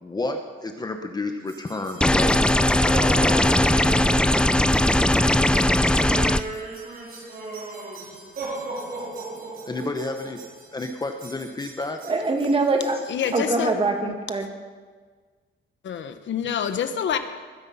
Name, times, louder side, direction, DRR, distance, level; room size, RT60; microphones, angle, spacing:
voice 1, 0.0-3.7 9.7-10.4 10.7-12.0, left 2 dB, 20° left, 5 dB, 0.9 m, -31 dB
sound 1, 1.5-13.4, right 2 dB, 50° right, 3.9 m, -37 dB
sound 2, 2.0-6.4, left 1 dB, 5° left, 0.4 m, -19 dB
voice 2, 12.0-13.0 13.3-14.5, right 3 dB, 30° right, 3 dB, 2.0 m, -23 dB
voice 3, 13.1-13.8 14.0-14.1 15.8-17.2, left 8 dB, 70° left, 9 dB, 1.1 m, -27 dB
21.0 x 9.9 x 5.5 m, 1.5 s
cardioid pair, 140°, 20 cm